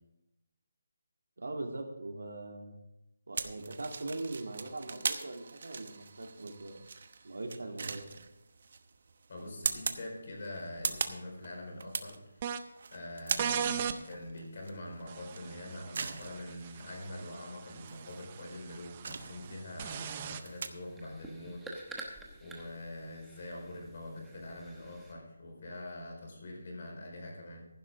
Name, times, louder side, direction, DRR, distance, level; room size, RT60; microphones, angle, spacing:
voice 1, 1.4-2.8 3.3-6.8 7.2-8.1, right 2 dB, 80° right, 2 dB, 2.8 m, -41 dB
sound 1, 3.4-20.7, right 4 dB, 45° right, 1.0 m, -41 dB
voice 2, 9.3-12.5 12.9-27.7, left 1 dB, 40° left, 1 dB, 4.6 m, -44 dB
sound 2, 12.4-12.6 13.4-14.0 15.1-20.4, right 8 dB, 20° right, 0.5 m, -39 dB
sound 3, 19.9-25.1, right 2 dB, 5° right, 1.0 m, -50 dB
15.5 x 11.0 x 3.7 m, 0.89 s
hypercardioid pair, 175°, 0 cm